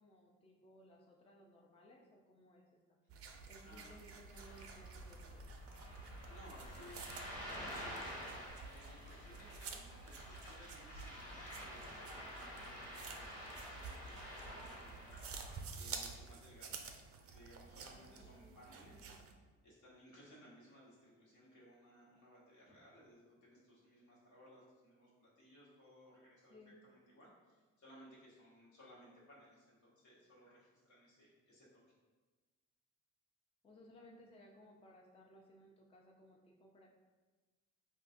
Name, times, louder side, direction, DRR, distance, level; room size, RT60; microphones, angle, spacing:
voice 1, 0.0-3.0 3.5-5.5 17.9-19.3 26.5-26.8 33.6-36.9, equal, 20° left, -1 dB, 0.4 m, -61 dB
sound 1, 3.1-19.3, right 5 dB, 50° right, 0.4 m, -51 dB
voice 2, 3.3-4.0 6.2-15.2 15.7-19.2 19.6-26.6 26.8-31.8, equal, 75° left, -6 dB, 1.3 m, -62 dB
Ocean, 4.3-15.6, equal, 55° left, 1.4 m, -49 dB
3.7 x 2.4 x 2.6 m, 1.3 s
cardioid pair, 90°, 30 cm